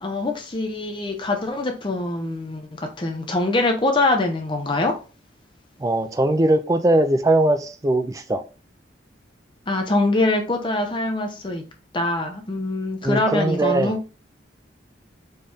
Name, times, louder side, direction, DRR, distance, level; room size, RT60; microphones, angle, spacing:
voice 1, 0.0-5.0 9.7-11.6 11.9-14.0, left 2 dB, 25° left, 0.7 m, -24 dB
voice 2, 5.8-8.4 13.0-14.0, right 1 dB, 20° right, 0.4 m, -20 dB
4.4 x 3.2 x 3.4 m
head